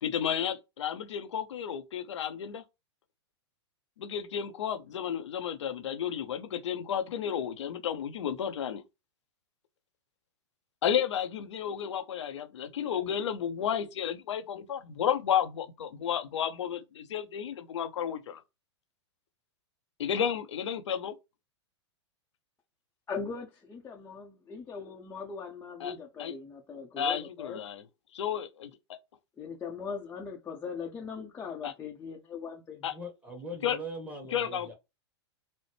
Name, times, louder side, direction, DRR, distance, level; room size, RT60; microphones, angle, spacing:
voice 1, 0.0-2.6 4.0-8.8 10.8-18.4 20.0-21.2 25.8-25.9 26.2-26.3 27.0-27.8 28.1-28.7 31.6-31.7 32.8-32.9 33.6-33.8 34.3-34.7, left 8 dB, 80° left, 0.6 m, -32 dB
voice 2, 23.1-27.6 29.4-32.9, left 5 dB, 15° left, 0.6 m, -40 dB
voice 3, 32.9-34.7, right 1 dB, 10° right, 1.2 m, -41 dB
4.1 x 2.1 x 3.2 m
hypercardioid pair, 120°, 15 cm